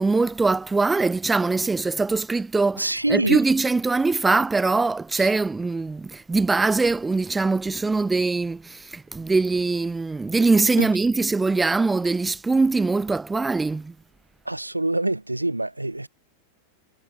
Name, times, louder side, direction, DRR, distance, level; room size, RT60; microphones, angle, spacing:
voice 1, 0.0-13.9, right 3 dB, 10° right, 1.4 m, -22 dB
voice 2, 2.8-3.4 5.2-5.3 10.8-10.9 14.4-16.1, right 2 dB, 85° right, 3.2 m, -25 dB
figure-of-eight pair, 90°, 0 cm